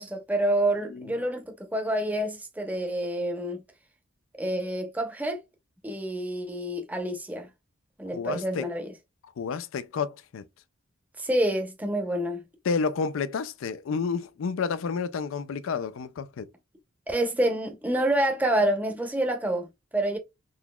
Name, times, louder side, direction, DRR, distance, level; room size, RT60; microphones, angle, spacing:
voice 1, 0.0-3.6 4.4-5.4 5.8-7.5 8.0-8.9 11.2-12.4 17.1-20.2, right 1 dB, 10° right, 0.7 m, -28 dB
voice 2, 8.1-8.7 9.4-10.4 12.7-16.5, left 5 dB, 75° left, 0.4 m, -30 dB
3.9 x 2.9 x 2.2 m
head